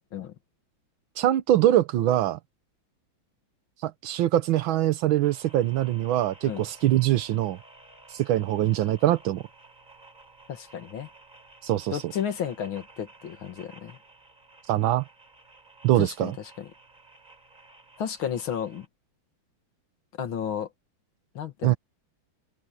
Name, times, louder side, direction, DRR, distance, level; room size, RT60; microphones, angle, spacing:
voice 1, 1.2-2.4 3.8-7.6 8.1-9.4 11.6-12.0 14.7-15.0 15.8-16.3 21.6-21.8, right 13 dB, 85° right, 1.6 m, -23 dB
sound 1, 5.2-18.9, right 2 dB, 20° right, 4.5 m, -53 dB
voice 2, 10.5-11.1 11.9-14.0 15.9-16.7 18.0-18.9 20.2-20.7 21.3-21.8, left 8 dB, 80° left, 2.5 m, -33 dB
omnidirectional pair, 2.2 m